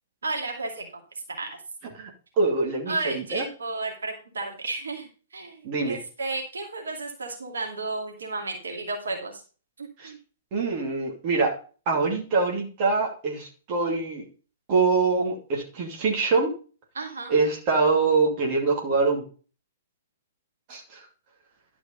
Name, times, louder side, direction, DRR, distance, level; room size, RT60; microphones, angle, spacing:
voice 1, 0.2-0.8 1.3-1.5 2.9-9.4 9.8-10.2 16.9-17.3, right 3 dB, 70° right, 1 dB, 2.5 m, -33 dB
voice 2, 2.4-3.5 5.6-6.0 10.0-10.1 10.5-11.6 11.9-14.3 14.7-16.6 17.3-19.2 20.7-21.0, right 4 dB, 40° right, 0 dB, 2.5 m, -24 dB
11.5 x 5.2 x 5.4 m, 0.37 s
figure-of-eight pair, 110°, 0 cm